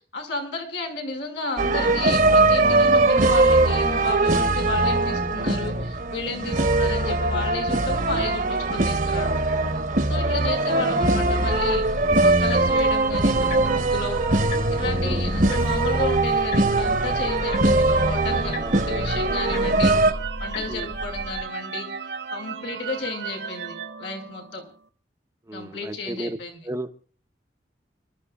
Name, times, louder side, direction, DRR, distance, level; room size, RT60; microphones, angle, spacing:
voice 1, 0.1-8.4 8.7-9.4 10.1-14.2 14.7-21.9 22.3-24.6 25.5-26.6, left 3 dB, 90° left, 1 dB, 5.4 m, -32 dB
sound 1, 1.6-20.1, right 2 dB, 45° right, 1.1 m, -21 dB
sound 2, 11.5-21.4, left 1 dB, 50° left, 2.1 m, -35 dB
sound 3, 17.8-24.8, right 6 dB, 75° right, 0.9 m, -35 dB
voice 2, 18.6-19.1 19.6-19.9 20.7-20.9 25.5-26.4 26.6-26.9, right 1 dB, 15° right, 8 dB, 0.8 m, -34 dB
30.0 x 13.0 x 2.4 m, 0.42 s
head